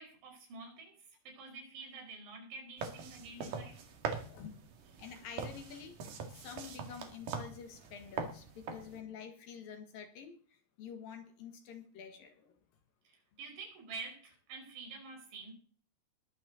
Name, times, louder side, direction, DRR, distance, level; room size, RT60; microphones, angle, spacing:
voice 1, 0.0-3.9 13.1-15.6, right 4 dB, 90° right, 1 dB, 7.5 m, -48 dB
sound 1, 2.8-9.0, right 5 dB, 55° right, 3.0 m, -43 dB
voice 2, 4.3-4.6 5.0-6.0 6.3-12.6, left 7 dB, 60° left, 7 dB, 2.9 m, -48 dB
21.0 x 8.1 x 4.1 m, 0.42 s
omnidirectional pair, 5.1 m